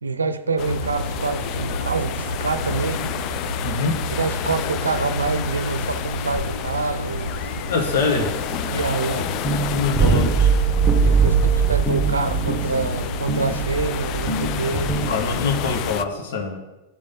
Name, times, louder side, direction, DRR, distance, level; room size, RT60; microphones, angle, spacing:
voice 1, 0.0-3.1 4.1-7.3 8.7-9.3 11.0-15.0, right 4 dB, 75° right, 11 dB, 0.6 m, -26 dB
sound 1, 0.6-16.0, left 12 dB, 40° left, 0.4 m, -31 dB
sound 2, 0.7-15.9, right 1 dB, 90° left, 0.9 m, -32 dB
voice 2, 3.6-4.0 7.7-8.3 9.7-10.5 15.1-16.6, left 4 dB, 55° left, 4 dB, 1.3 m, -24 dB
sound 3, 9.4-15.6, right 5 dB, 10° right, 1.4 m, -21 dB
10.0 x 5.2 x 5.4 m, 1.0 s
figure-of-eight pair, 90°, 0 cm